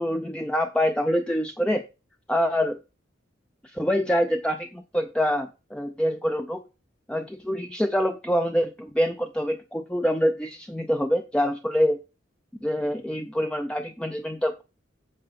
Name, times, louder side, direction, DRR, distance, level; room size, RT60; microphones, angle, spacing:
voice 1, 0.0-1.8 2.3-2.8 3.6-6.6 7.1-12.0 12.6-14.6, equal, 5° left, 6 dB, 0.4 m, -25 dB
7.7 x 4.7 x 5.2 m, 0.30 s
head